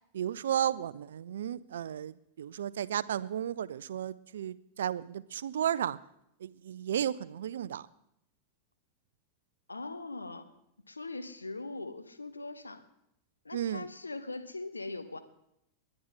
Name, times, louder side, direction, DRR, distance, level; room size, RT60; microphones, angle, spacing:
voice 1, 0.1-6.0 6.4-7.8 13.5-13.9, right 10 dB, 60° right, 18 dB, 0.5 m, -33 dB
voice 2, 9.7-10.6 10.9-12.9 13.4-15.2, left 3 dB, 80° left, 10 dB, 1.2 m, -41 dB
29.5 x 10.5 x 3.8 m, 0.80 s
figure-of-eight pair, 90°, 0 cm